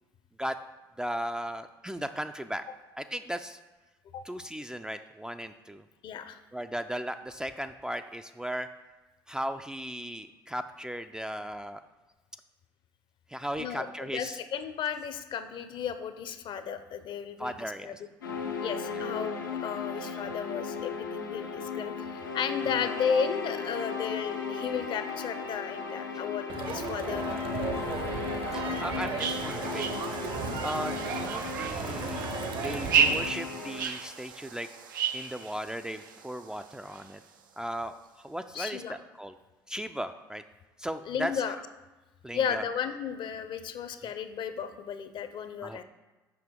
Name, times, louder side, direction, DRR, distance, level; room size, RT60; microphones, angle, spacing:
voice 1, 1.0-2.6 3.0-3.6 4.3-5.8 6.5-8.7 9.3-11.8 13.3-14.4 17.4-18.0 18.4-18.5 18.9-19.0 28.2-29.9 30.6-32.3 32.5-34.7 35.1-37.2 37.6-38.0 38.2-39.4 39.7-40.4 40.8-41.4 42.2-42.6 45.6-45.8, equal, 5° right, 8 dB, 0.3 m, -36 dB
voice 2, 6.0-6.4 13.6-18.0 18.6-27.6 30.6-30.7 38.5-39.0 41.1-41.5 42.3-45.8, left 7 dB, 50° left, 11 dB, 0.6 m, -34 dB
sound 1, 18.2-33.8, left 5 dB, 90° left, 0.8 m, -36 dB
Crowd, 26.5-33.3, right 5 dB, 55° right, 0.9 m, -36 dB
sound 2, 29.2-37.4, right 7 dB, 85° right, 0.5 m, -33 dB
6.8 x 5.6 x 3.6 m, 1.2 s
hypercardioid pair, 60°, 11 cm